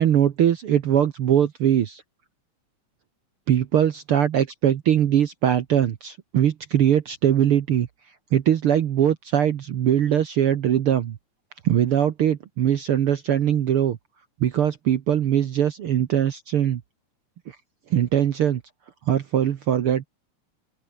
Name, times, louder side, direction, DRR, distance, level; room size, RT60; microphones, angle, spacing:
voice 1, 0.0-2.0 3.5-7.9 8.3-11.2 11.6-14.0 14.4-16.8 17.9-18.6 19.1-20.1, right 10 dB, 60° right, 1.5 m, -21 dB
open air
omnidirectional pair, 3.6 m